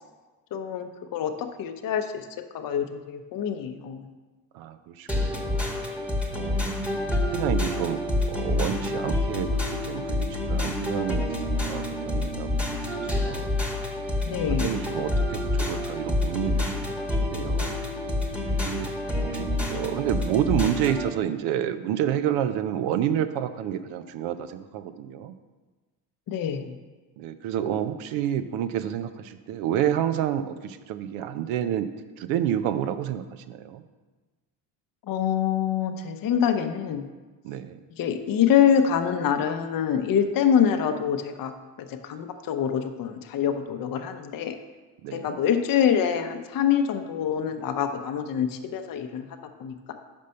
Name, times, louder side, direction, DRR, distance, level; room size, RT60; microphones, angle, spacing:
voice 1, 0.5-2.2 2.5-4.0 14.3-14.7 26.3-26.7 35.1-37.1 38.0-41.5 42.0-44.6 45.1-49.3 49.6-49.9, left 8 dB, 45° left, 6 dB, 0.7 m, -25 dB
voice 2, 4.5-5.6 6.3-7.0 7.3-8.0 8.3-11.3 11.7-12.5 13.0-13.6 14.5-16.8 17.2-17.8 18.7-18.9 19.3-25.3 27.2-31.9 32.2-33.8 37.4-37.8 45.0-45.4, right 10 dB, 70° right, 11 dB, 0.7 m, -29 dB
sound 1, 5.1-21.1, left 1 dB, 5° right, 1.2 m, -28 dB
sound 2, 6.2-21.0, left 12 dB, 30° right, 1.4 m, -42 dB
5.4 x 5.2 x 5.5 m, 1.3 s
hypercardioid pair, 65°, 49 cm